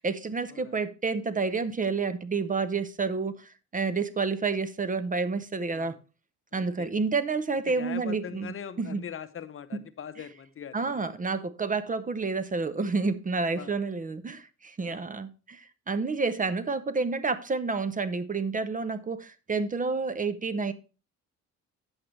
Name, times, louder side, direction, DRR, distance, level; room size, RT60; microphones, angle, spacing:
voice 1, 0.0-5.9 6.5-9.0 9.7-9.8 10.7-20.7, right 4 dB, 25° right, 0.7 m, -29 dB
voice 2, 6.5-6.9 7.7-10.9 13.5-13.7 14.8-15.1, left 8 dB, 45° left, 0.8 m, -41 dB
8.8 x 7.6 x 3.2 m
cardioid pair, 90°, 30 cm